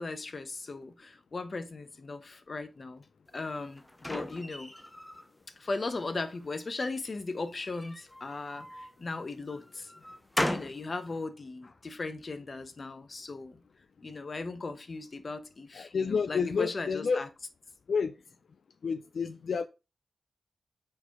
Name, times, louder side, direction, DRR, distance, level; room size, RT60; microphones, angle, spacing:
voice 1, 0.0-3.0 3.3-3.8 4.1-4.7 5.6-9.9 10.5-13.6 14.0-17.3, left 3 dB, 40° left, 0.8 m, -37 dB
sound 1, 3.3-5.3 5.7-6.5 7.5-8.9 9.5-10.8, left 1 dB, 10° left, 0.6 m, -37 dB
voice 2, 15.7-17.3 17.9-18.1 18.8-19.7, left 5 dB, 70° left, 0.3 m, -30 dB
4.8 x 4.6 x 4.7 m
wide cardioid pair, 115°, 0 cm